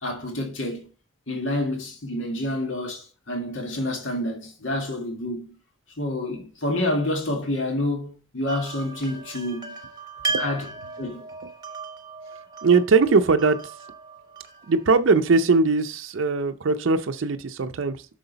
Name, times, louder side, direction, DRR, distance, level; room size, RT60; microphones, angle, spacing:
voice 1, 0.0-0.9 1.3-5.5 6.0-9.7 10.4-10.7 11.0-11.3, left 1 dB, 75° left, 1.9 m, -28 dB
sound 1, 8.5-15.4, right 3 dB, 20° right, 1.1 m, -36 dB
voice 2, 12.6-13.7 14.7-18.1, right 4 dB, 80° right, 0.5 m, -20 dB
7.7 x 6.3 x 4.0 m
head